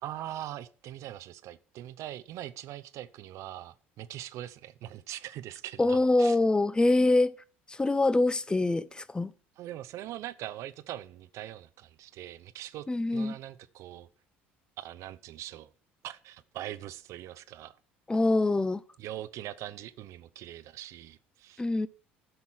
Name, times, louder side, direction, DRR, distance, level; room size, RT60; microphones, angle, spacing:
voice 1, 0.0-6.4 9.6-12.9 13.1-14.1 14.8-15.7 16.0-17.8 19.0-21.6, right 13 dB, 55° right, 0.7 m, -42 dB
voice 2, 5.8-7.3 7.7-9.3 12.9-13.3 18.1-18.8 21.6-21.9, left 2 dB, 15° left, 0.7 m, -24 dB
12.5 x 5.5 x 6.2 m
hypercardioid pair, 60°, 6 cm